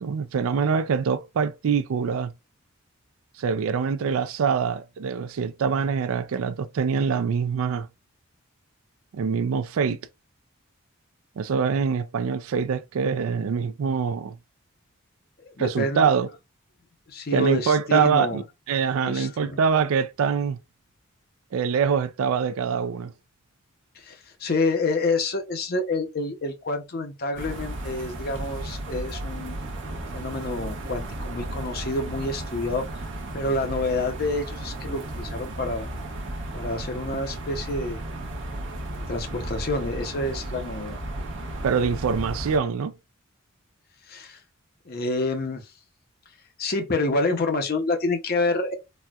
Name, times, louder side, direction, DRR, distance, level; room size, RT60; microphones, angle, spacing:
voice 1, 0.0-2.3 3.4-7.9 9.1-10.0 11.4-14.4 15.6-16.3 17.3-18.4 18.7-20.6 21.5-23.1 41.6-42.9, right 6 dB, 75° right, 0.4 m, -24 dB
voice 2, 15.4-16.1 17.1-18.4 19.0-19.6 24.0-29.5 30.1-33.0 33.3-35.9 36.5-38.0 39.1-41.0 44.1-44.4 44.9-45.6 46.6-48.7, left 2 dB, 45° left, 0.7 m, -28 dB
sound 1, 27.4-42.6, right 1 dB, 60° right, 0.8 m, -34 dB
4.1 x 2.2 x 2.3 m
head